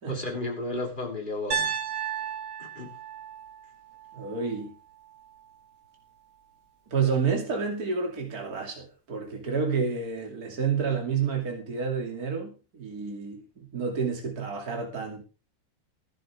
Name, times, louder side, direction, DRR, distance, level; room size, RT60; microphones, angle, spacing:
voice 1, 0.1-1.7 2.6-2.9, left 2 dB, 20° left, 3.4 m, -33 dB
Piano, 1.5-5.6, right 7 dB, 85° right, 2.7 m, -35 dB
voice 2, 4.1-4.7 6.9-15.2, right 5 dB, 45° right, 3.2 m, -29 dB
16.0 x 11.0 x 3.6 m
omnidirectional pair, 2.3 m